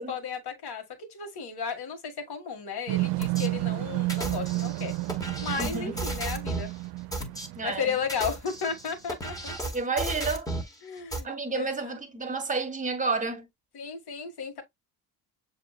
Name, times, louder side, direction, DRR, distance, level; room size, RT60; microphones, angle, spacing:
voice 1, 0.0-4.9 5.4-6.7 7.6-9.5 10.8-11.9 13.7-14.6, left 6 dB, 50° left, 1.7 m, -34 dB
sound 1, 2.9-8.2, right 20 dB, 60° right, 0.5 m, -31 dB
sound 2, 3.2-3.5 4.1-6.7 7.1-7.5 8.0-10.7 11.1-11.2, right 2 dB, 5° left, 1.5 m, -34 dB
voice 2, 5.6-5.9 7.5-8.0 9.7-10.5 11.2-13.5, right 3 dB, 15° right, 1.4 m, -30 dB
6.9 x 2.9 x 2.3 m
hypercardioid pair, 50°, 49 cm